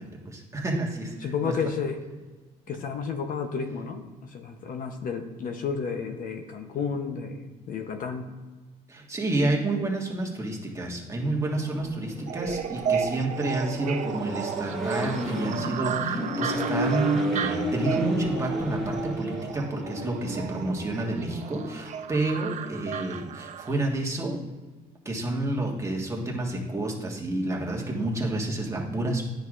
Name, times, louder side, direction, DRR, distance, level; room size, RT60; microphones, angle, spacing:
voice 1, 0.0-1.5 8.9-24.4 25.0-29.2, right 2 dB, 15° right, -2 dB, 1.5 m, -29 dB
voice 2, 1.2-2.0 2.7-8.3, left 5 dB, 55° left, 5 dB, 0.8 m, -32 dB
Accelerating revving vroom, 11.5-22.0, equal, 5° left, 2.2 m, -33 dB
sound 1, 12.3-23.8, right 7 dB, 45° right, 0.5 m, -34 dB
9.8 x 6.2 x 2.5 m, 1.3 s
cardioid pair, 110°, 17 cm